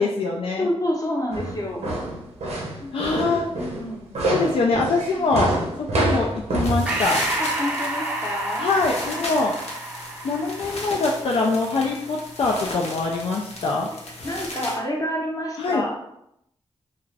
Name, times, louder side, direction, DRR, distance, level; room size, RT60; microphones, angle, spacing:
voice 1, 0.0-0.7 2.9-3.4 4.2-5.5 5.8-7.2 8.6-9.5 10.2-13.9 15.6-15.9, left 3 dB, 60° left, -1 dB, 0.4 m, -23 dB
voice 2, 0.6-1.8 2.8-3.2 3.6-4.1 7.4-8.7 14.2-16.0, left 1 dB, 30° left, -1 dB, 0.8 m, -28 dB
sound 1, 1.3-6.8, right 2 dB, 85° right, 0.7 m, -26 dB
sound 2, 6.5-14.8, left 1 dB, 80° left, 0.7 m, -35 dB
Breathing, 6.9-11.7, right 1 dB, 10° right, 0.5 m, -30 dB
2.4 x 2.3 x 3.2 m, 0.79 s
cardioid pair, 75°, 11 cm